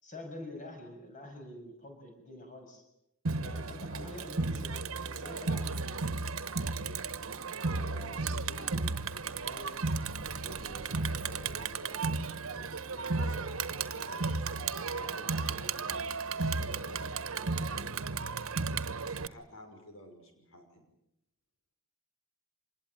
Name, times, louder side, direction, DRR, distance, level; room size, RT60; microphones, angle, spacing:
voice 1, 0.0-2.8 3.4-6.1 9.4-9.8, left 1 dB, 40° left, 4 dB, 6.9 m, -46 dB
Crowd, 3.2-19.3, right 4 dB, 85° right, 1.3 m, -34 dB
voice 2, 7.6-8.9 10.4-12.1 13.0-17.1 17.4-18.1 19.1-20.8, equal, 75° left, 4 dB, 5.9 m, -51 dB
26.5 x 20.5 x 9.2 m, 0.82 s
head